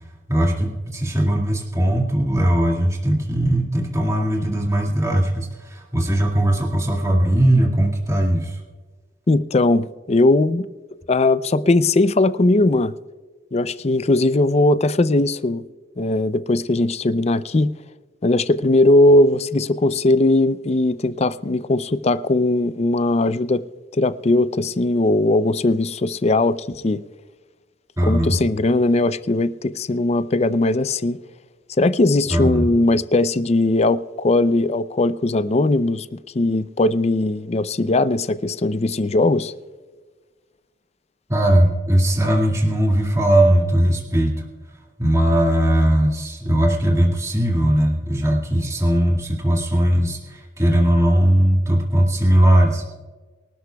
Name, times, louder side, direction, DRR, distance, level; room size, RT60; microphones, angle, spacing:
voice 1, 0.3-8.6 28.0-28.4 32.3-32.7 41.3-44.4 45.0-52.8, right 1 dB, 20° right, 2.1 m, -19 dB
voice 2, 9.3-10.7 11.1-12.9 13.5-15.6 16.0-17.7 18.2-23.6 23.9-27.0 28.0-31.2 31.8-36.1 36.3-39.5, left 2 dB, 35° left, 0.5 m, -19 dB
24.0 x 12.5 x 2.3 m
head